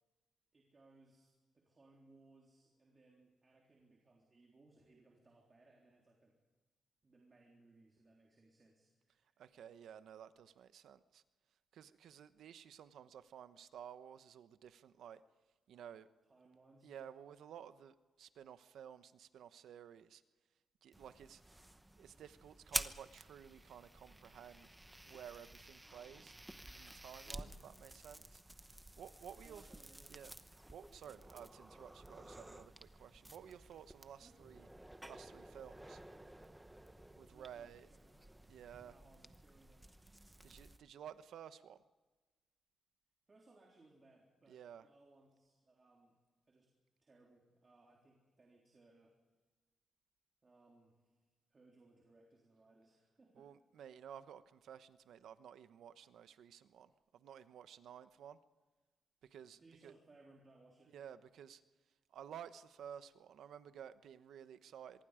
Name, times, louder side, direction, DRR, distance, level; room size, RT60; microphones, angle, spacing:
voice 1, 0.5-6.4 7.0-9.4 16.3-16.9 27.2-27.6 29.4-30.2 34.2-34.6 37.3-38.2 38.8-39.9 43.3-46.1 46.5-46.7 47.0-49.2 50.4-51.1 51.5-53.5 59.6-61.0, right 2 dB, 30° right, -1 dB, 3.6 m, -66 dB
voice 2, 9.4-11.2 11.7-15.2 15.7-16.1 16.8-20.2 20.8-21.6 22.0-24.7 25.1-26.4 26.7-28.4 29.0-29.7 30.1-30.3 30.7-34.7 35.1-36.0 37.2-37.9 38.5-38.9 40.4-41.8 44.5-44.8 53.3-58.4 59.3-59.9 60.9-61.6 62.1-65.0, right 9 dB, 90° right, 12 dB, 1.0 m, -54 dB
sound 1, 20.9-40.8, right 1 dB, 10° right, 0.9 m, -51 dB
25.0 x 22.5 x 5.1 m, 1.3 s
wide cardioid pair, 135°, 0 cm